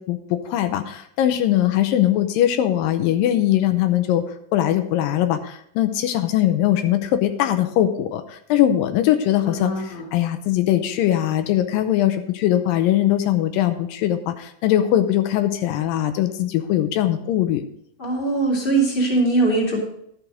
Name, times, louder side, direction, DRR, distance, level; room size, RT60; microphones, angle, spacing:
voice 1, 0.0-4.2 4.5-17.6, left 12 dB, 85° left, 8 dB, 2.4 m, -21 dB
voice 2, 9.5-10.1 18.0-19.8, right 2 dB, 15° left, -3 dB, 2.3 m, -21 dB
11.5 x 6.3 x 5.1 m, 0.72 s
omnidirectional pair, 4.0 m